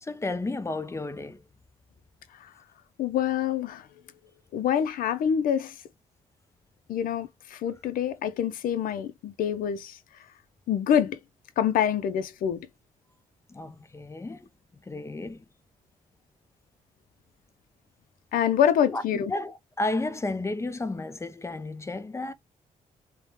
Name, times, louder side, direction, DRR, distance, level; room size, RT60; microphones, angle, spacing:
voice 1, 0.0-1.4 13.5-14.5 14.8-15.4 18.8-22.3, left 2 dB, 20° left, 0.5 m, -32 dB
voice 2, 3.0-3.9 4.5-5.7 6.9-10.0 10.7-11.2 11.6-12.7 18.3-19.3, left 9 dB, 75° left, 0.5 m, -26 dB
3.2 x 2.1 x 2.8 m
cardioid pair, 75°, 14 cm